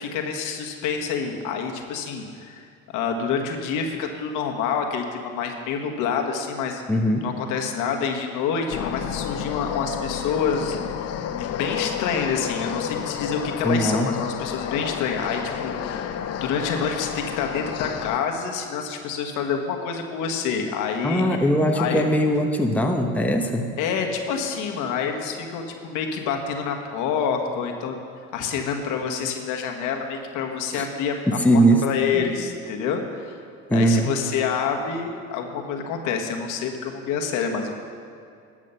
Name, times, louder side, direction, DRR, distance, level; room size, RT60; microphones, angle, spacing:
voice 1, 0.0-2.7 2.9-6.8 7.2-16.1 16.3-22.1 23.8-28.0 28.3-31.1 31.5-33.4 33.7-37.7, left 6 dB, 65° left, 3 dB, 1.5 m, -27 dB
voice 2, 6.9-7.2 13.6-14.1 21.0-23.6 30.7-30.9 31.4-31.8 32.1-32.2 33.7-34.1, right 1 dB, 5° left, 2 dB, 1.0 m, -20 dB
sound 1, 8.7-18.2, left 9 dB, 50° left, 0.7 m, -31 dB
12.5 x 7.4 x 5.6 m, 2.3 s
supercardioid pair, 85°, 33 cm